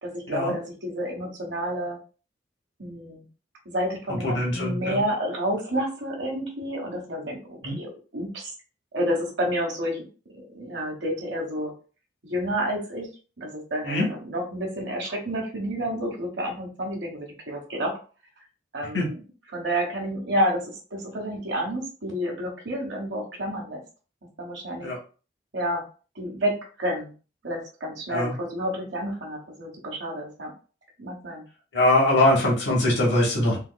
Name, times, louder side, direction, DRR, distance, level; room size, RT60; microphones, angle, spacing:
voice 1, 0.0-2.0 2.8-3.2 3.6-8.5 8.9-10.1 10.3-11.7 12.2-13.1 13.4-17.9 18.7-19.2 19.5-23.8 24.4-24.9 25.5-25.8 26.1-27.1 27.4-30.5 31.0-31.4, equal, 75° right, 0 dB, 1.2 m, -30 dB
voice 2, 4.1-5.0 7.6-7.8 13.8-14.1 18.9-19.1 24.8-25.0 28.1-28.3 31.7-33.6, left 1 dB, 70° left, -4 dB, 1.2 m, -22 dB
3.5 x 3.0 x 2.2 m, 0.36 s
head